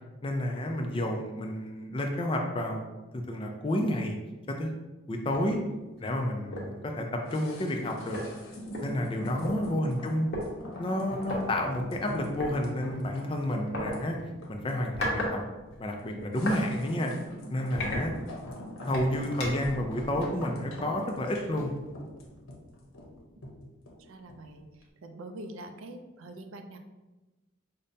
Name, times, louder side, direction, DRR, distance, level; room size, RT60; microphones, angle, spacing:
voice 1, 0.2-2.8 3.1-4.2 4.5-4.7 5.1-5.6 6.0-8.2 8.8-10.3 10.8-14.2 14.5-15.4 15.8-17.1 17.5-18.1 18.9-21.7, left 1 dB, 25° left, 2 dB, 0.3 m, -30 dB
sound 1, 5.3-5.5 6.0-6.1 6.5-6.8 7.8-7.9 8.1-9.5 10.3-10.5 11.2-11.4 12.4-12.6 13.7-13.9 14.7-15.3 15.7-16.6 17.1-17.2 17.7-18.5 18.9-19.7, left 1 dB, 50° left, 0.8 m, -34 dB
sound 2, 7.3-24.5 24.8-24.9, left 1 dB, 85° left, 0.8 m, -43 dB
voice 2, 9.4-9.7 24.0-26.8, right 1 dB, 90° right, 6 dB, 0.4 m, -45 dB
5.2 x 2.1 x 2.6 m, 1.1 s
head